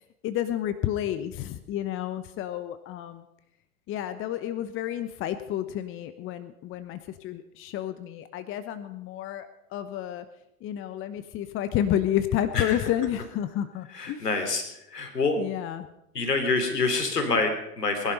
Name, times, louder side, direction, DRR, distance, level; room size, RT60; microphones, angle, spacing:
voice 1, 0.2-3.3 3.9-10.3 10.6-14.3 15.4-15.9, left 11 dB, 25° left, 12 dB, 1.0 m, -30 dB
voice 2, 13.9-15.4 16.1-18.1, left 3 dB, 85° left, 5 dB, 3.4 m, -26 dB
20.0 x 11.5 x 5.5 m, 0.83 s
figure-of-eight pair, 100°, 47 cm